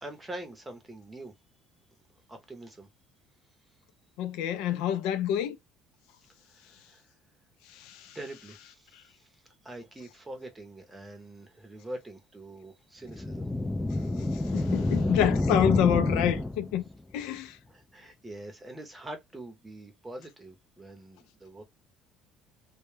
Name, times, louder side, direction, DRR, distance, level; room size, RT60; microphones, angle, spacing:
voice 1, 0.0-1.3 2.3-2.9 6.5-7.0 8.1-13.5 17.7-21.6, right 1 dB, 10° right, 0.7 m, -44 dB
voice 2, 4.2-5.6 7.7-8.2 8.9-9.0 14.3-16.8 17.1-17.6, left 10 dB, 80° left, 0.4 m, -28 dB
sound 1, 13.1-16.9, left 2 dB, 10° left, 0.3 m, -28 dB
2.2 x 2.1 x 3.1 m
cardioid pair, 150°, 0 cm